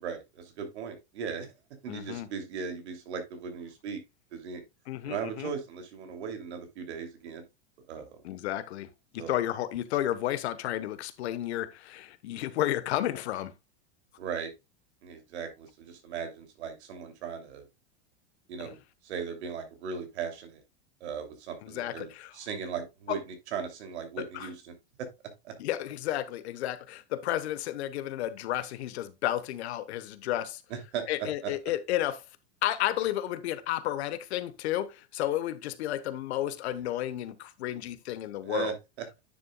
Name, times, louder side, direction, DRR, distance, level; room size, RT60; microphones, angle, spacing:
voice 1, 0.0-1.5 1.8-4.0 4.3-4.6 5.0-7.4 7.9-8.2 9.2-9.3 14.2-14.5 15.0-17.6 18.5-18.8 19.0-20.6 21.0-25.1 25.4-25.5 30.7-31.5 38.4-39.1, right 6 dB, 85° right, 2.9 m, -38 dB
voice 2, 1.9-2.3 4.9-5.5 8.2-13.5 18.6-18.7 21.6-22.3 23.1-23.2 24.3-24.5 25.6-30.6 31.1-32.2 32.6-38.7, left 13 dB, 80° left, 1.2 m, -32 dB
10.0 x 6.9 x 2.3 m
supercardioid pair, 155°, 33 cm